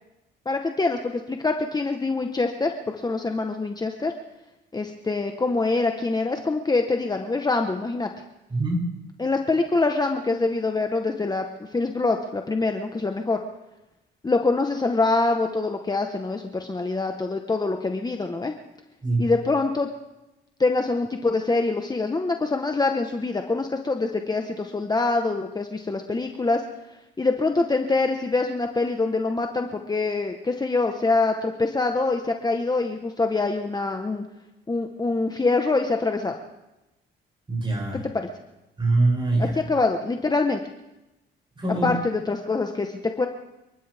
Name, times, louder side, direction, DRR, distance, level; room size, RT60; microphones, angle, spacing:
voice 1, 0.4-4.1 4.7-8.1 9.2-13.4 14.2-18.5 19.2-19.9 20.6-26.6 27.2-34.2 34.7-36.4 37.9-38.3 39.4-40.6 41.8-43.3, left 3 dB, 20° left, 4 dB, 1.2 m, -25 dB
voice 2, 8.5-8.9 19.0-19.3 37.5-38.0 38.8-39.5 41.6-41.9, right 2 dB, 25° right, -2 dB, 8.0 m, -23 dB
29.0 x 12.0 x 3.5 m, 0.97 s
cardioid pair, 90°, 20 cm